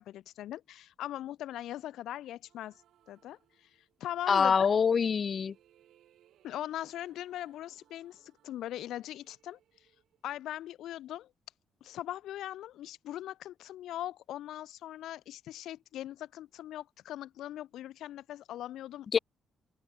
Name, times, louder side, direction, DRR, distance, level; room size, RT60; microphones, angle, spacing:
voice 1, 0.0-2.7 3.1-3.7 4.0-4.7 6.4-9.6 10.2-11.3 11.8-19.2, left 13 dB, 80° left, 0.6 m, -40 dB
sound 1, 2.4-4.2 4.9-11.0, right 12 dB, 75° right, 7.6 m, -68 dB
voice 2, 4.3-5.5 19.1-19.2, left 6 dB, 45° left, 0.3 m, -25 dB
open air
cardioid pair, 90°, 0 cm